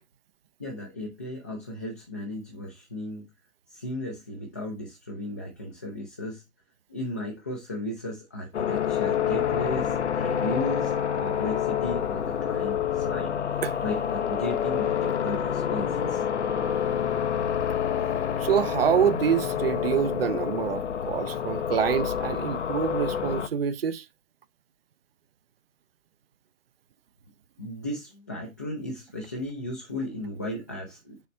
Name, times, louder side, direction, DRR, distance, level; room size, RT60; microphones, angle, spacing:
voice 1, 0.6-3.2 3.7-6.4 6.9-13.3 13.8-16.2 27.6-31.2, left 1 dB, 15° left, 0.4 m, -35 dB
sound 1, 8.5-23.5, left 8 dB, 55° left, 0.7 m, -28 dB
voice 2, 18.4-24.0, right 8 dB, 45° right, 0.6 m, -26 dB
6.8 x 3.3 x 4.2 m
figure-of-eight pair, 135°, 40 cm